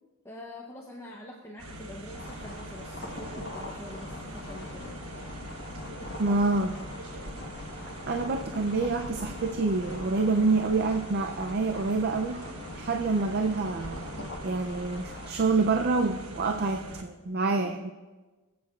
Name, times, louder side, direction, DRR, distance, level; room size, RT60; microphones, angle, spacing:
voice 1, 0.2-4.8, left 1 dB, 10° left, -1 dB, 0.7 m, -45 dB
sound 1, 1.6-17.0, right 1 dB, 75° right, 1.1 m, -43 dB
sound 2, 2.1-15.3, left 2 dB, 50° left, 1.2 m, -42 dB
voice 2, 6.2-6.7 8.1-12.4 12.8-14.1 14.4-17.9, right 3 dB, 45° right, 6 dB, 0.4 m, -27 dB
22.5 x 8.4 x 2.4 m, 1.3 s
head